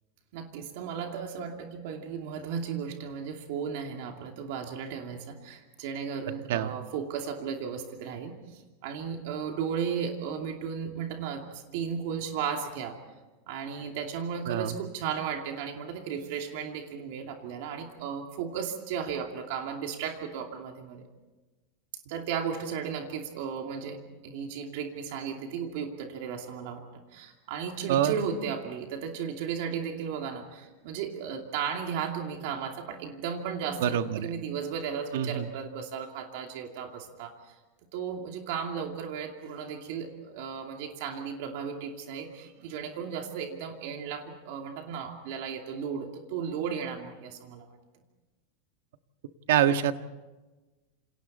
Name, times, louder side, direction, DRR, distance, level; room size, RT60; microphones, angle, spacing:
voice 1, 0.3-13.0 13.5-21.0 22.1-26.8 27.1-37.6 37.9-47.7, right 7 dB, 50° right, 3 dB, 2.6 m, -35 dB
voice 2, 14.5-14.8 27.9-28.1 33.8-34.3 35.1-35.5 49.5-49.9, right 10 dB, 70° right, 8 dB, 1.5 m, -25 dB
28.5 x 27.5 x 4.3 m, 1.1 s
supercardioid pair, 175°, 0 cm